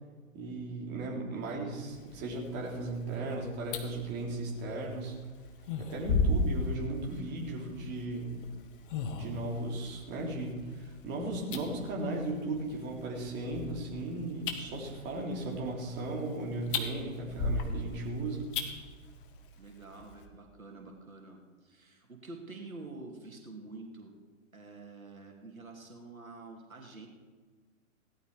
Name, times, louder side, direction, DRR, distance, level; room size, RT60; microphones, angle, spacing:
voice 1, 0.3-5.2 5.8-8.4 9.1-18.5, right 2 dB, 25° right, -2 dB, 2.9 m, -36 dB
sound 1, 1.9-20.2, left 3 dB, 40° left, 1.7 m, -38 dB
voice 2, 19.6-24.1 24.5-27.1, right 3 dB, 85° right, 2 dB, 2.5 m, -47 dB
17.0 x 11.5 x 4.8 m, 1.4 s
figure-of-eight pair, 120°, 41 cm